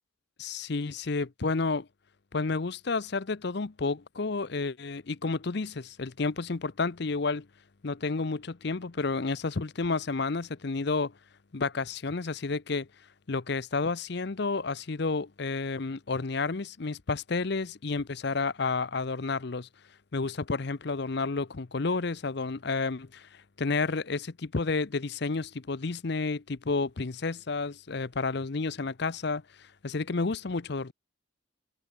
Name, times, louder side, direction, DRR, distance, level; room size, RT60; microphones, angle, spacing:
voice 1, 0.4-1.9 2.3-7.5 7.8-11.1 11.5-12.9 13.3-19.7 20.1-23.3 23.6-30.9, left 4 dB, 55° left, 0.7 m, -31 dB
head